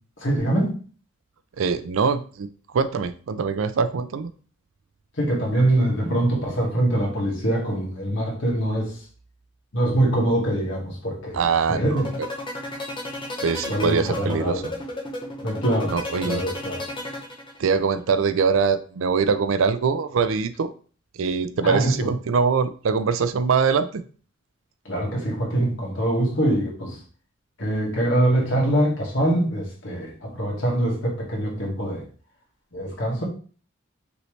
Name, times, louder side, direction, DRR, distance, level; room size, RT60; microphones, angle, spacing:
voice 1, 0.2-0.8 5.2-8.9 9.7-12.1 13.7-14.7 15.4-15.9 16.2-16.9 21.6-22.1 24.8-27.0 27.6-32.0 32.7-33.2, right 1 dB, 65° left, 1.7 m, -24 dB
voice 2, 1.6-2.5 2.7-4.3 11.3-12.0 13.4-14.6 15.9-16.4 17.6-20.7 21.2-24.0, right 5 dB, 75° right, 0.4 m, -23 dB
sound 1, 11.9-17.8, left 2 dB, 25° left, 1.0 m, -33 dB
5.2 x 3.2 x 3.2 m
head